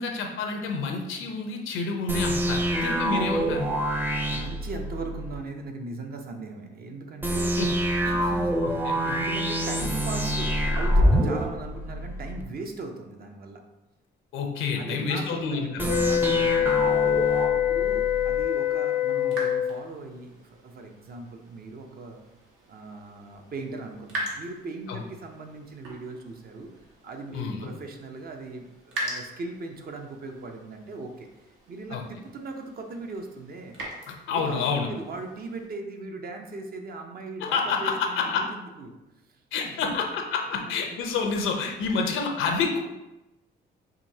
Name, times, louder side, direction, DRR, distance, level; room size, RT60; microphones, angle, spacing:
voice 1, 0.0-3.7 7.6-7.8 8.0-8.2 8.6-9.0 14.3-15.9 24.9-25.0 27.3-27.7 31.9-32.0 34.1-34.9 37.4-38.5 39.5-42.8, left 5 dB, 85° left, 3 dB, 0.7 m, -28 dB
sound 1, 2.1-5.4 7.2-12.4 15.8-18.4, equal, 10° right, 0.5 m, -26 dB
voice 2, 4.3-7.5 8.1-13.6 14.8-22.2 22.7-26.7 27.0-31.3 31.7-33.7 34.3-38.9 39.3-40.0 40.6-41.0 41.9-42.0, right 3 dB, 50° right, 3 dB, 0.7 m, -39 dB
sound 2, 15.8-19.8, left 11 dB, 45° left, 0.4 m, -24 dB
sound 3, 17.8-35.7, right 1 dB, 80° right, 1.1 m, -42 dB
5.0 x 2.7 x 2.8 m, 0.99 s
cardioid pair, 90°, 20 cm